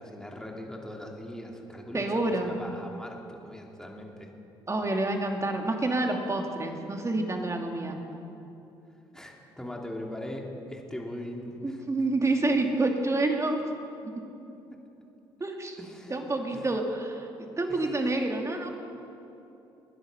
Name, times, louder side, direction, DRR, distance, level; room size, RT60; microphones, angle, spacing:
voice 1, 0.0-4.3 9.1-11.8 14.7-14.8 15.8-16.2 16.5-16.7 17.7-17.8, left 1 dB, 5° left, 0 dB, 2.9 m, -40 dB
voice 2, 1.9-2.5 4.7-8.0 11.6-13.7 14.0-14.1 15.4-15.8 16.1-18.7, right 2 dB, 25° right, 3 dB, 2.6 m, -28 dB
21.0 x 10.0 x 6.1 m, 2.8 s
hypercardioid pair, 55°, 11 cm